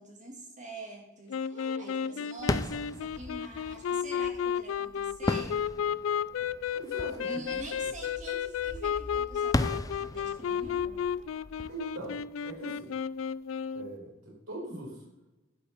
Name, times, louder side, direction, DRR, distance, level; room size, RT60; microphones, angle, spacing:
voice 1, 0.0-5.6 7.2-11.0, right 2 dB, 40° right, -1 dB, 3.0 m, -45 dB
sound 1, 1.3-13.9, left 8 dB, 80° left, 0.3 m, -33 dB
voice 2, 1.5-2.2 6.7-7.6 11.7-12.9 13.7-15.0, right 1 dB, 85° right, -2 dB, 4.4 m, -42 dB
sound 2, 2.4-13.0, left 2 dB, 20° left, 0.5 m, -37 dB
11.5 x 5.6 x 7.0 m, 0.99 s
head